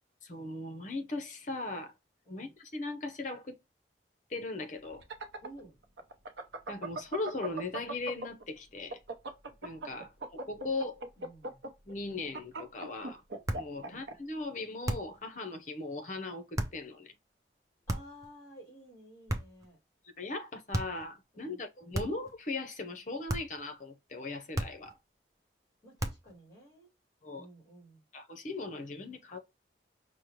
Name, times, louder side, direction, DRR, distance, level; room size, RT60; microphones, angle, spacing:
voice 1, 0.2-1.9 2.3-3.6 4.3-5.0 6.7-9.0 9.6-10.1 10.5-11.0 11.9-13.2 13.6-17.1 20.2-25.0 27.2-27.5 28.1-29.4, left 3 dB, 45° left, 0.7 m, -38 dB
sound 1, 4.8-8.4 8.8-14.1, right 2 dB, 80° right, 0.7 m, -39 dB
voice 2, 5.4-5.8 10.0-10.1 10.6-10.7 11.2-11.7 13.8-14.0 17.9-19.8 21.5-21.6 25.8-26.9 27.3-28.0, right 1 dB, 15° left, 1.8 m, -53 dB
sound 2, 13.4-13.8 14.8-15.2 16.5-16.8 17.9-18.3 19.3-19.7 20.7-21.1 21.9-22.3 23.3-23.6 24.5-25.0 26.0-26.4, right 1 dB, 20° right, 0.5 m, -35 dB
5.3 x 2.1 x 3.1 m
head